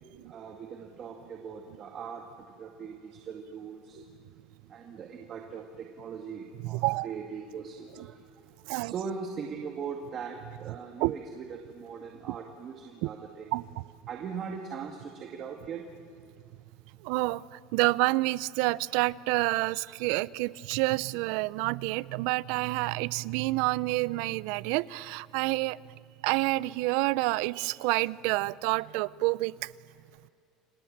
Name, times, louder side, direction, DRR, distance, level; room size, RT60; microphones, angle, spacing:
voice 1, 0.3-2.2 2.6-4.0 4.7-8.1 8.8-13.5 14.1-15.8, right 6 dB, 35° right, 3 dB, 1.8 m, -40 dB
voice 2, 6.6-7.1 8.7-8.9 11.0-11.1 13.0-13.1 13.5-13.6 17.0-25.8 26.2-29.7, right 21 dB, 70° right, 21 dB, 0.5 m, -28 dB
30.0 x 25.0 x 7.4 m, 2.4 s
cardioid pair, 155°, 0 cm